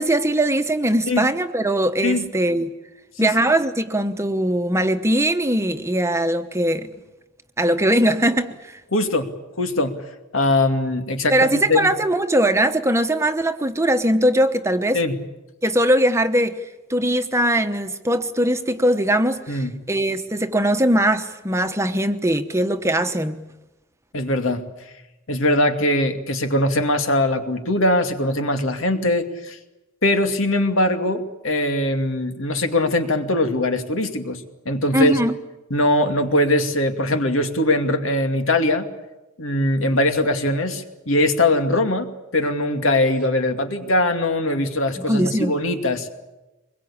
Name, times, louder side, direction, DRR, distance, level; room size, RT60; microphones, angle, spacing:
voice 1, 0.0-2.7 3.2-6.9 7.6-8.8 11.3-15.0 15.6-16.6 16.9-23.4 34.9-35.3 45.0-45.5, right 1 dB, 15° right, 1.0 m, -20 dB
voice 2, 8.9-9.3 9.6-10.0 10.3-11.9 14.9-15.1 19.5-19.7 24.1-24.7 25.3-29.6 30.0-34.4 34.7-35.2 35.7-38.9 39.4-46.1, left 1 dB, 85° left, 2.5 m, -21 dB
24.5 x 22.0 x 8.7 m
head